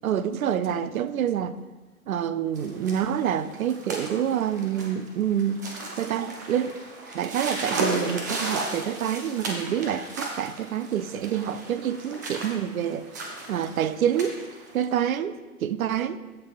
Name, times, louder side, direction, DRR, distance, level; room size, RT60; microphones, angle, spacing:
voice 1, 0.0-1.5 2.1-5.6 6.0-6.8 7.1-13.1 13.5-14.4 14.7-16.3, right 9 dB, 70° right, 0.6 m, -27 dB
sound 1, 2.6-14.8, right 2 dB, 15° right, 0.3 m, -35 dB
14.0 x 5.5 x 2.4 m
figure-of-eight pair, 120°, 44 cm